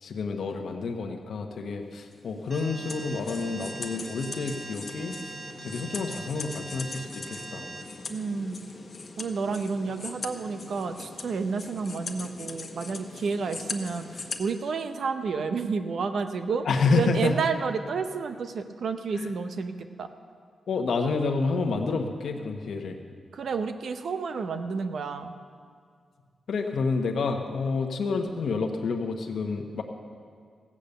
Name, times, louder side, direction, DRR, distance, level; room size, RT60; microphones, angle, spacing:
voice 1, 0.0-5.3 5.6-7.6 16.6-17.3 19.1-19.3 20.7-23.0 26.5-29.8, left 4 dB, 75° left, 3 dB, 1.1 m, -29 dB
sound 1, 2.1-14.4, left 3 dB, 45° left, 1.0 m, -41 dB
Alarm, 2.5-7.8, right 2 dB, 45° right, 1.2 m, -42 dB
voice 2, 8.1-8.6 9.2-20.1 23.3-25.3, right 5 dB, 70° right, 8 dB, 0.8 m, -30 dB
16.0 x 8.6 x 6.7 m, 2.1 s
cardioid pair, 85°, 0 cm